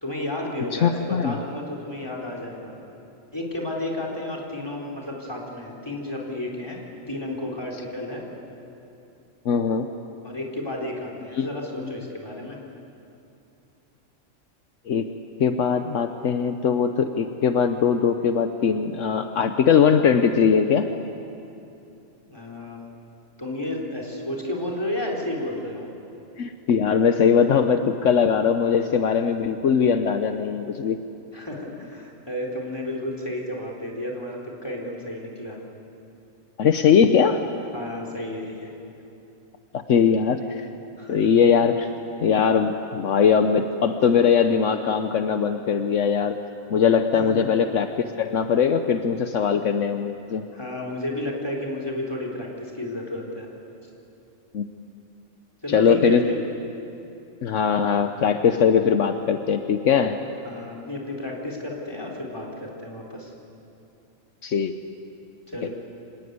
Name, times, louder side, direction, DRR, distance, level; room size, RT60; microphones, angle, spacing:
voice 1, 0.0-2.7 3.3-6.8 7.1-8.2 10.2-12.6 22.3-22.9 23.4-25.8 31.3-35.6 37.7-38.7 41.0-41.2 47.1-47.4 50.5-53.5 55.6-56.4 60.4-63.3 65.5-65.7, left 1 dB, 20° left, -1 dB, 3.9 m, -32 dB
voice 2, 0.7-1.4 9.4-9.9 11.4-11.5 14.9-15.1 15.4-20.9 26.4-31.0 36.6-37.4 39.7-40.7 41.1-41.9 42.2-46.4 46.7-50.4 54.5-54.6 55.7-56.3 57.4-60.2 64.4-64.7 65.6-65.7, left 7 dB, 70° left, 7 dB, 1.2 m, -20 dB
25.5 x 18.5 x 9.5 m, 2.8 s
omnidirectional pair, 1.3 m